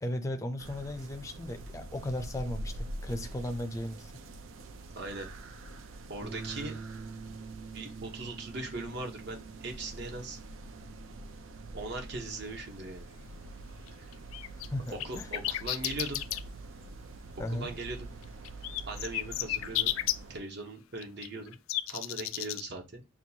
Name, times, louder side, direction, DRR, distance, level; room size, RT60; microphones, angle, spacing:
voice 1, 0.0-4.1 14.7-15.3 17.4-17.7, left 1 dB, 15° left, 0.4 m, -36 dB
sound 1, 0.6-20.4, right 2 dB, 75° right, 0.5 m, -45 dB
voice 2, 5.0-5.3 6.1-6.7 7.7-10.4 11.7-13.1 15.0-16.2 17.5-18.1 18.9-19.9 20.3-21.5 21.9-23.0, right 2 dB, 55° right, 0.9 m, -39 dB
Bass guitar, 6.2-12.5, right 4 dB, 30° right, 0.7 m, -47 dB
sound 2, 13.9-16.4 18.4-20.1 21.0-22.6, left 14 dB, 80° left, 0.3 m, -32 dB
5.9 x 2.3 x 2.8 m
head